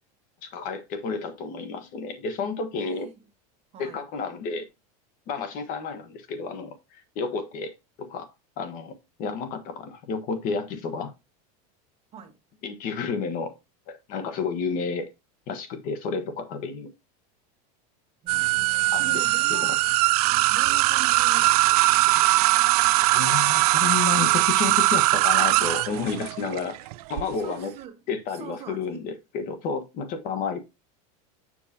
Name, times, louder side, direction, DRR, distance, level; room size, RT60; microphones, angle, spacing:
voice 1, 0.4-3.1 3.8-4.7 5.3-8.3 8.6-8.9 9.2-11.1 12.6-13.5 13.9-15.1 15.5-16.9 18.9-19.7 23.0-27.7 28.1-30.6, left 5 dB, 45° left, 1.3 m, -31 dB
voice 2, 2.7-3.2 3.7-4.1 12.1-12.4 18.2-19.8 20.5-22.4 27.3-28.0 28.3-29.0, right 8 dB, 30° right, 1.4 m, -43 dB
sound 1, 18.3-27.2, right 18 dB, 80° right, 0.4 m, -21 dB
7.3 x 6.0 x 2.9 m
supercardioid pair, 145°, 19 cm